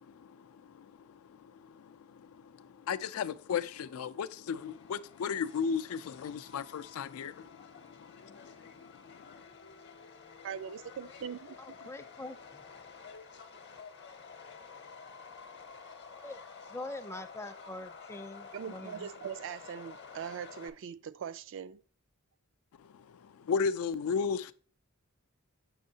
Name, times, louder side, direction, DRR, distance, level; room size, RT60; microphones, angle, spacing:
voice 1, 0.0-9.4 22.8-24.5, left 6 dB, 90° left, 0.3 m, -36 dB
Subway metro underground, 4.6-20.7, left 5 dB, 55° left, 0.7 m, -51 dB
voice 2, 10.4-11.9 18.5-21.8, right 8 dB, 65° right, 0.3 m, -41 dB
voice 3, 11.6-12.6 16.2-16.4 16.7-19.1, left 2 dB, 15° left, 0.4 m, -44 dB
6.3 x 6.2 x 2.7 m
head